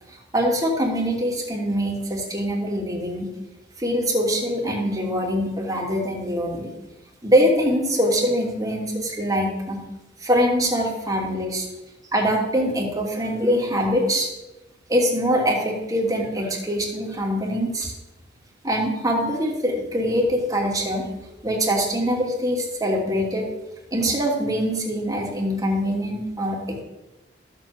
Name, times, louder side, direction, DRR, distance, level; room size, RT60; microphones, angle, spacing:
voice 1, 0.1-3.3 3.8-6.7 7.2-9.8 10.2-11.7 12.1-14.3 14.9-17.9 18.6-23.5 23.9-26.8, equal, 20° right, -1 dB, 3.0 m, -23 dB
14.5 x 7.7 x 7.2 m, 1.0 s
head